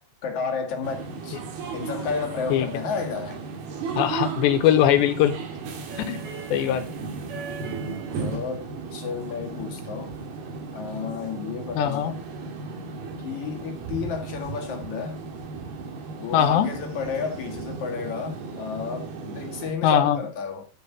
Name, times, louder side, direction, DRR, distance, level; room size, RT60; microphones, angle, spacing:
voice 1, 0.2-1.4 1.7-3.4 8.2-10.1 10.7-12.2 13.2-15.2 16.2-20.7, left 5 dB, 50° left, 2.8 m, -32 dB
sound 1, 0.8-19.7, right 4 dB, 60° right, 3.8 m, -35 dB
voice 2, 4.0-5.3 6.0-6.2 6.5-6.8 11.8-12.1 16.3-16.7 19.8-20.2, left 10 dB, 80° left, 3.2 m, -20 dB
11.0 x 10.5 x 4.5 m
omnidirectional pair, 5.3 m